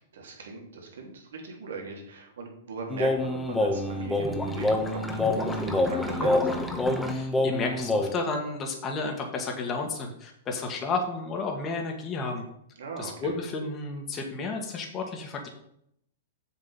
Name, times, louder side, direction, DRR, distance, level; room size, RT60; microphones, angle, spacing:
voice 1, 0.1-6.5 12.8-13.3, right 4 dB, 70° right, 0 dB, 3.2 m, -39 dB
sound 1, 2.9-8.1, left 2 dB, 5° left, 1.5 m, -26 dB
voice 2, 7.1-12.5 13.0-15.5, left 3 dB, 30° left, 2 dB, 1.9 m, -32 dB
7.4 x 7.4 x 5.5 m, 0.72 s
hypercardioid pair, 110°, 0 cm